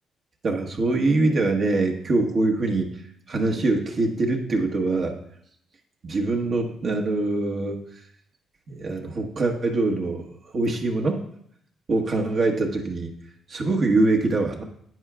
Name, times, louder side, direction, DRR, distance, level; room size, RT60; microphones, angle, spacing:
voice 1, 0.4-2.9 3.3-5.2 6.0-7.8 8.7-10.3 10.5-11.2 11.9-13.1 13.5-14.6, right 2 dB, 50° right, 2 dB, 1.3 m, -23 dB
10.5 x 8.8 x 2.4 m, 0.70 s
cardioid pair, 90°, 0 cm